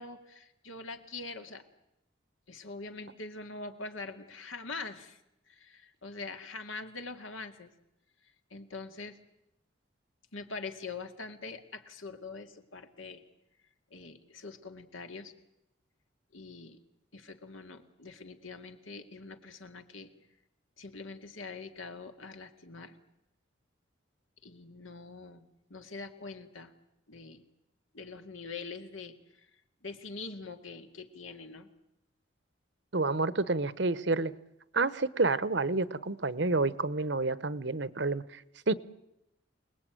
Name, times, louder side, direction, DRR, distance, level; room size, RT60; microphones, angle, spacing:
voice 1, 0.0-1.6 2.5-5.2 5.5-7.7 8.5-9.2 10.3-13.2 13.9-15.3 16.3-16.8 17.1-20.1 20.8-23.0 24.4-25.4 25.7-26.7 27.1-27.4 27.9-29.2 29.8-31.7, left 3 dB, 85° left, 2.3 m, -43 dB
voice 2, 32.9-34.3 34.7-38.4 38.7-38.8, right 3 dB, 60° right, 1.0 m, -29 dB
28.0 x 19.5 x 9.2 m
head